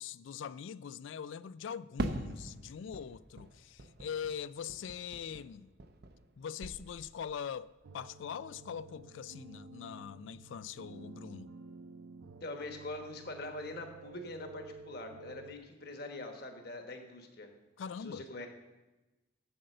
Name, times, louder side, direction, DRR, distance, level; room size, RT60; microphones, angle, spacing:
voice 1, 0.0-5.7 6.4-11.5 17.8-18.2, left 7 dB, 70° left, 0.3 m, -42 dB
Fireworks, 2.0-6.3 6.6-7.4, right 1 dB, 50° right, 0.6 m, -42 dB
sound 1, 7.8-15.6, right 3 dB, 90° right, 0.5 m, -52 dB
voice 2, 12.4-17.5 18.0-18.5, left 2 dB, 50° left, 1.2 m, -43 dB
7.8 x 7.8 x 6.6 m
head